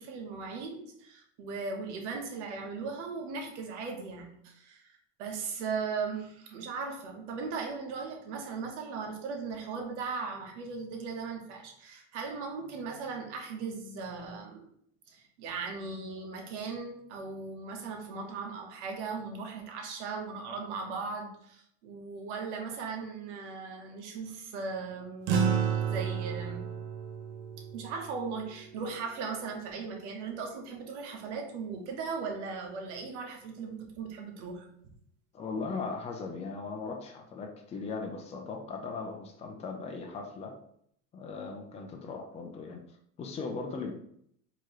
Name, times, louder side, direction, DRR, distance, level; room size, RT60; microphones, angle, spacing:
voice 1, 0.0-14.6 15.1-26.6 27.7-34.7, right 4 dB, 85° right, 2 dB, 1.2 m, -38 dB
sound 1, 25.3-29.9, right 7 dB, 65° right, 0.8 m, -32 dB
voice 2, 35.3-40.5 41.1-42.8 43.2-43.9, left 4 dB, 20° left, 2 dB, 0.5 m, -38 dB
4.5 x 3.1 x 3.0 m, 0.69 s
supercardioid pair, 135°, 35 cm